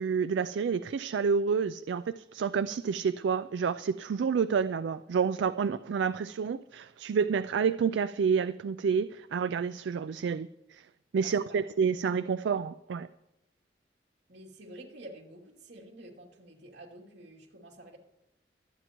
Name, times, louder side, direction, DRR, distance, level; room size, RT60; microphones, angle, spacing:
voice 1, 0.0-10.8 11.1-13.1, right 6 dB, 85° right, 13 dB, 0.4 m, -29 dB
voice 2, 11.2-11.6 14.3-18.0, right 1 dB, 70° right, -1 dB, 2.7 m, -49 dB
24.5 x 9.1 x 3.0 m, 0.93 s
head